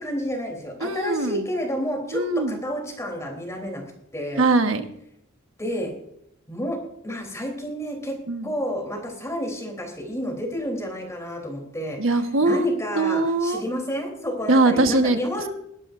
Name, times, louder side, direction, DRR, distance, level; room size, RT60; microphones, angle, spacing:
voice 1, 0.0-3.8 4.1-4.4 5.6-5.9 6.5-8.2 8.4-12.0 12.4-15.5, equal, 15° left, 2 dB, 3.5 m, -30 dB
voice 2, 0.8-1.4 2.1-2.6 4.4-4.8 8.3-8.5 12.0-13.6 14.5-15.2, right 2 dB, 70° right, 7 dB, 1.4 m, -21 dB
22.5 x 12.0 x 2.6 m, 0.75 s
head